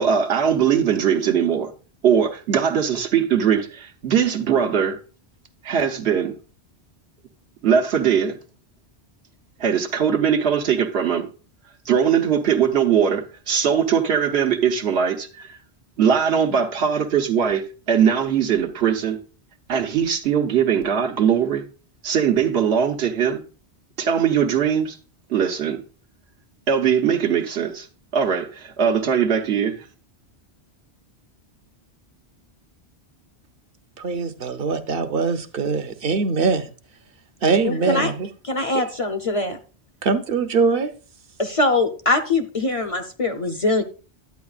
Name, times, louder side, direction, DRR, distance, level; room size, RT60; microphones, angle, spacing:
voice 1, 0.0-1.7 2.0-5.0 5.6-6.3 7.6-8.4 9.6-11.3 11.9-15.6 16.0-19.2 19.7-21.6 22.0-23.4 24.0-25.0 25.3-25.8 26.7-27.9 28.1-29.8, right 7 dB, 80° right, 1.2 m, -20 dB
voice 2, 34.0-36.7 37.4-38.3 38.7-38.8 40.0-40.9, right 5 dB, 60° right, 0.9 m, -22 dB
voice 3, 37.6-38.1 38.4-39.6 41.4-43.8, left 2 dB, 40° left, 0.7 m, -22 dB
10.5 x 8.7 x 2.4 m
omnidirectional pair, 1.1 m